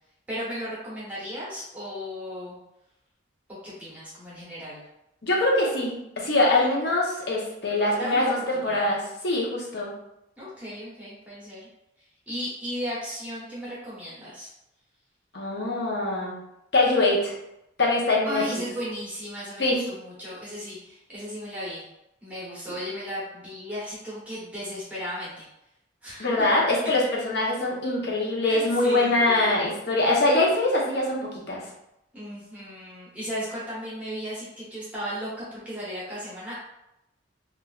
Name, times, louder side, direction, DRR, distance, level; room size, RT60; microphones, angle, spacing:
voice 1, 0.3-2.6 3.6-4.9 6.4-6.7 8.0-8.9 10.4-11.7 12.3-14.5 18.2-21.8 22.2-25.5 26.0-26.5 28.4-29.5 32.1-36.5, equal, 10° right, -9 dB, 1.0 m, -35 dB
voice 2, 5.2-9.9 15.3-16.4 16.7-17.3 17.8-18.6 19.6-19.8 26.2-31.6, left 2 dB, 55° left, -4 dB, 0.8 m, -23 dB
3.2 x 2.4 x 2.3 m, 0.85 s
head